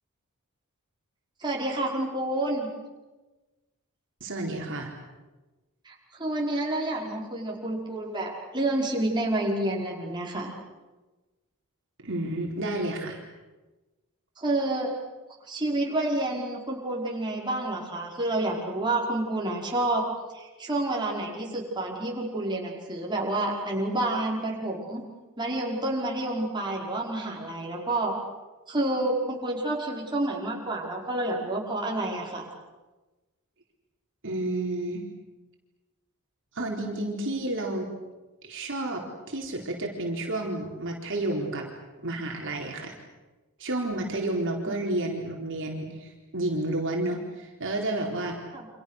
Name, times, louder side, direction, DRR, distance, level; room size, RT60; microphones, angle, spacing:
voice 1, 1.4-2.7 5.8-10.5 14.4-14.9 15.5-20.1 20.3-25.0 25.4-28.1 28.7-32.5 48.5-48.7, right 1 dB, 20° right, -2 dB, 5.4 m, -29 dB
voice 2, 4.2-4.9 12.0-13.2 34.2-35.0 36.5-37.9 38.4-39.0 39.3-41.7 42.0-42.9 43.6-48.3, right 1 dB, 60° right, 0 dB, 4.3 m, -30 dB
29.5 x 27.0 x 6.7 m, 1.2 s
head